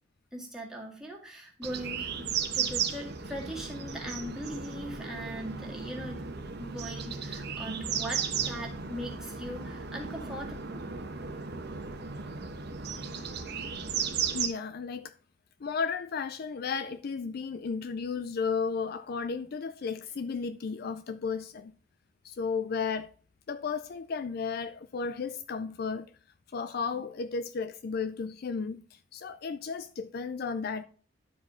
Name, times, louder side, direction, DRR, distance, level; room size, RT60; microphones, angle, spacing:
voice 1, 0.3-6.2 6.6-10.8, equal, ahead, 2.0 m, -40 dB
sound 1, 1.6-14.5, right 6 dB, 55° right, 1.0 m, -35 dB
voice 2, 14.3-15.1 15.6-21.7 22.2-23.1 23.5-26.1 26.5-30.8, left 5 dB, 50° left, 0.4 m, -34 dB
11.0 x 4.9 x 5.0 m
head